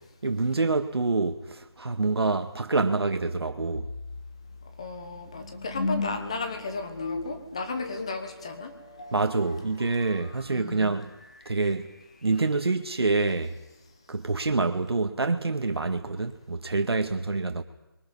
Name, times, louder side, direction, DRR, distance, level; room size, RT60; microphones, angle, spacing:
voice 1, 0.2-3.9 9.1-11.1 11.5-11.9 12.2-13.6 14.1-17.6, right 3 dB, 80° right, 1.9 m, -26 dB
sound 1, 3.7-12.8, left 3 dB, 35° left, 1.5 m, -38 dB
voice 2, 4.8-8.7 10.5-10.9, left 4 dB, 15° left, 1.0 m, -34 dB
29.0 x 23.0 x 5.6 m
figure-of-eight pair, 180°, 13 cm